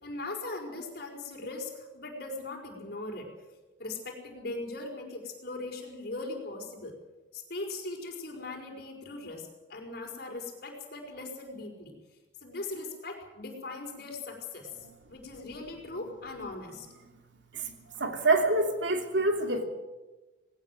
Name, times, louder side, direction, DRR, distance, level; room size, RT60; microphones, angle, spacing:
voice 1, 0.0-3.3 3.8-7.0 7.3-11.9 12.4-14.7 15.1-16.9, left 2 dB, 55° left, 2 dB, 5.2 m, -39 dB
voice 2, 18.0-19.6, right 2 dB, 75° right, 4 dB, 3.0 m, -26 dB
20.0 x 17.5 x 7.8 m, 1.1 s
head